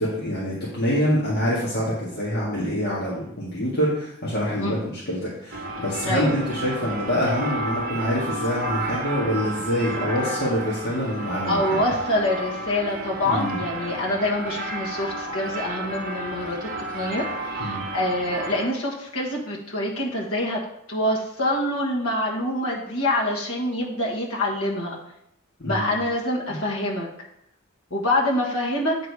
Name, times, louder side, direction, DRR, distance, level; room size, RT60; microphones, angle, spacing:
voice 1, 0.0-11.8 13.2-13.6 17.6-17.8 25.6-25.9 26.5-26.6, equal, 50° left, -7 dB, 1.7 m, -26 dB
sound 1, 5.5-18.7, right 2 dB, 45° right, 1.0 m, -31 dB
voice 2, 11.5-20.6 20.9-25.0 25.6-27.1 27.9-29.0, left 1 dB, 80° left, -3 dB, 1.4 m, -26 dB
8.4 x 3.8 x 4.7 m, 0.77 s
head